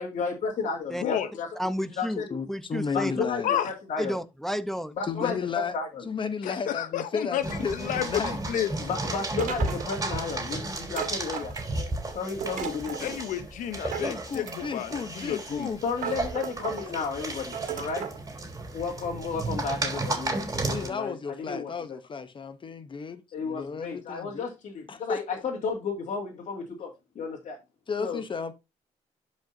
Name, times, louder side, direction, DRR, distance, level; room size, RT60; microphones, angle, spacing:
voice 1, 0.0-1.5 2.0-2.3 2.9-4.2 5.0-5.4 5.7-6.0 8.8-11.5 12.1-13.1 15.8-18.1 18.7-21.7 23.3-26.9 27.2-27.6 28.0-28.2, left 5 dB, 65° left, 2.3 m, -33 dB
voice 2, 1.6-3.1 4.0-4.9, equal, 5° left, 0.8 m, -31 dB
voice 3, 2.3-3.5 5.1-5.7 6.1-8.4 13.9-15.8 16.8-16.9 20.6-24.5 24.9-25.2 27.9-28.5, left 5 dB, 40° left, 0.9 m, -33 dB
voice 4, 6.4-7.4 7.7-8.7 13.0-15.7, left 10 dB, 85° left, 0.9 m, -30 dB
sound 1, 7.4-20.9, right 2 dB, 25° right, 3.4 m, -34 dB
sound 2, 9.4-10.2 10.9-11.9 12.4-13.1 13.9-14.8 15.5-15.6 16.0-16.9 17.5-18.2, right 8 dB, 80° right, 2.3 m, -36 dB
11.5 x 5.3 x 2.7 m
cardioid pair, 95°, 13 cm